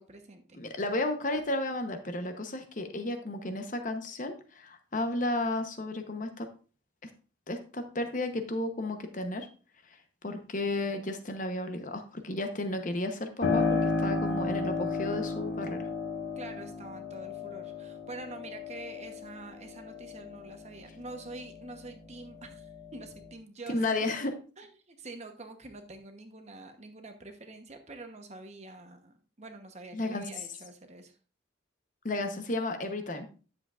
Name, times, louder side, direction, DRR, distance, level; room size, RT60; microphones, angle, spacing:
voice 1, 0.0-0.6 16.4-24.1 24.6-31.2, right 2 dB, 35° right, 6 dB, 1.0 m, -46 dB
voice 2, 0.5-6.5 7.0-7.1 7.5-9.5 10.2-15.9 23.7-24.3 29.9-30.2 32.0-33.3, left 2 dB, 40° left, 7 dB, 0.9 m, -33 dB
Piano, 13.4-21.9 22.3-23.3, left 4 dB, 80° left, 1.7 m, -33 dB
10.5 x 7.3 x 2.5 m, 0.37 s
head